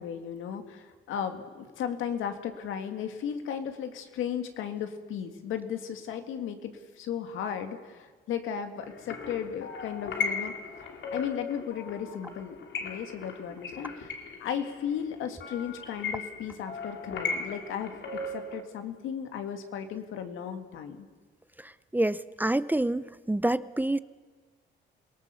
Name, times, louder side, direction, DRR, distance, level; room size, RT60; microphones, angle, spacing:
voice 1, 0.0-10.5 11.1-12.6 12.8-21.1, left 8 dB, 85° left, 7 dB, 2.1 m, -35 dB
sound 1, 8.9-18.6, left 4 dB, 70° left, 2.8 m, -37 dB
voice 2, 21.6-24.0, right 1 dB, 10° right, 16 dB, 0.6 m, -28 dB
28.0 x 18.5 x 7.1 m, 1.4 s
cardioid pair, 90°, 20 cm